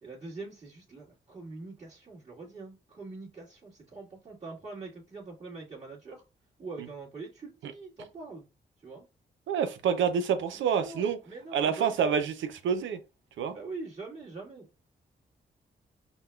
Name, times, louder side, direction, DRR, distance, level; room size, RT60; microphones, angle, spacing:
voice 1, 0.0-6.2 6.6-8.5 8.8-9.0 10.5-12.1 13.5-14.7, right 3 dB, 30° right, 1.8 m, -43 dB
voice 2, 9.5-11.2 11.5-13.0 13.4-13.6, right 7 dB, 85° right, 0.6 m, -27 dB
5.4 x 2.2 x 2.3 m
supercardioid pair, 55°, 19 cm